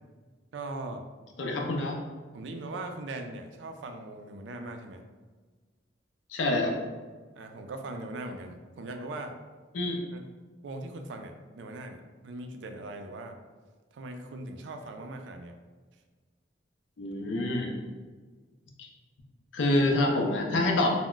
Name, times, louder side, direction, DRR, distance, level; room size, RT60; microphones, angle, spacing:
voice 1, 0.5-1.0 2.3-5.0 7.4-9.4 10.1-10.2 10.6-13.4 13.9-15.6, right 2 dB, 70° right, 6 dB, 0.3 m, -40 dB
voice 2, 1.4-2.0 6.3-6.8 9.7-10.0 17.0-17.7 18.8-18.9 19.5-20.9, left 2 dB, 80° left, 2 dB, 0.5 m, -26 dB
2.2 x 2.1 x 3.7 m, 1.4 s
head